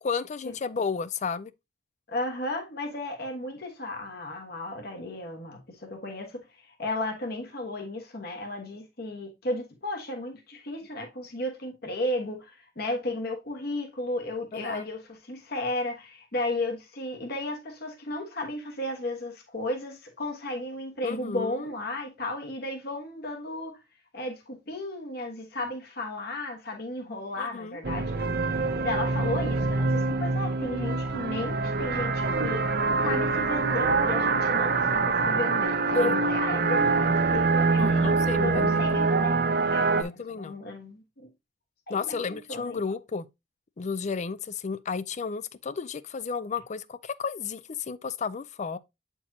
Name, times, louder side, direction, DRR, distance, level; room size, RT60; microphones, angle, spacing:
voice 1, 0.0-1.5 14.5-14.9 21.0-21.7 27.4-27.8 35.9-36.2 37.8-39.1 40.0-40.6 41.9-43.2 43.8-48.8, left 5 dB, 40° left, 0.4 m, -33 dB
voice 2, 2.1-15.0 15.3-23.8 24.1-39.4 39.7-39.9 40.4-41.3 41.9-42.8, left 2 dB, 60° left, 1.4 m, -34 dB
sound 1, 27.8-40.0, right 3 dB, 60° right, 0.7 m, -25 dB
8.5 x 4.5 x 2.7 m
head